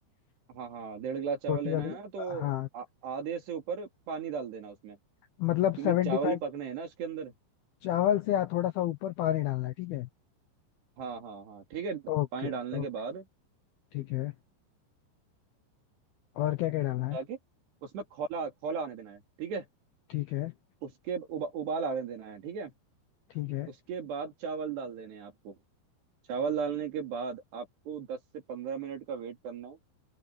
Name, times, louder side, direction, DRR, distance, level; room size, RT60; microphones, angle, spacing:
voice 1, 0.5-5.0 5.8-7.3 11.0-13.3 17.1-17.4 17.8-19.7 20.8-22.7 23.7-25.6 26.3-29.8, right 6 dB, 60° right, 5.4 m, -36 dB
voice 2, 1.5-1.9 2.3-2.7 5.4-6.4 7.8-10.1 12.1-12.9 13.9-14.3 16.4-17.2 20.1-20.5 23.3-23.7, left 13 dB, 75° left, 2.3 m, -29 dB
open air
omnidirectional pair, 5.6 m